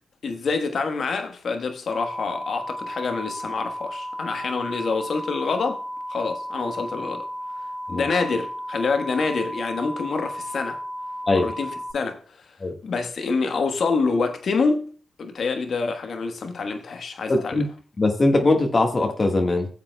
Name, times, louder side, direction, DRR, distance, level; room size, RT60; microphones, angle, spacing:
voice 1, 0.2-5.8 6.1-7.2 7.9-10.8 11.3-12.2 12.8-14.9 15.2-17.6, left 4 dB, 65° left, 1.3 m, -26 dB
sound 1, 1.9-11.9, equal, 5° right, 2.1 m, -34 dB
voice 2, 17.3-17.7 18.0-19.7, left 2 dB, 40° left, 1.5 m, -21 dB
15.5 x 7.4 x 2.2 m
supercardioid pair, 40°, 0 cm